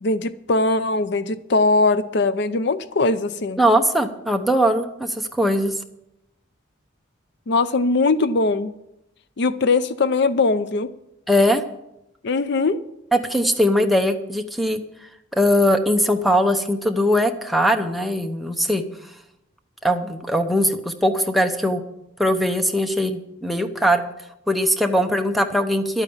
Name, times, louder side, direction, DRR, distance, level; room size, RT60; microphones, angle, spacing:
voice 1, 0.0-3.6 7.5-8.7 9.4-10.9 12.2-12.8, left 3 dB, 55° left, 13 dB, 0.5 m, -20 dB
voice 2, 3.6-5.7 11.3-11.6 13.1-14.8 15.3-18.8 19.8-21.8 22.2-24.0 24.5-26.0, equal, ahead, 4 dB, 0.8 m, -20 dB
12.0 x 9.0 x 7.1 m, 0.84 s
head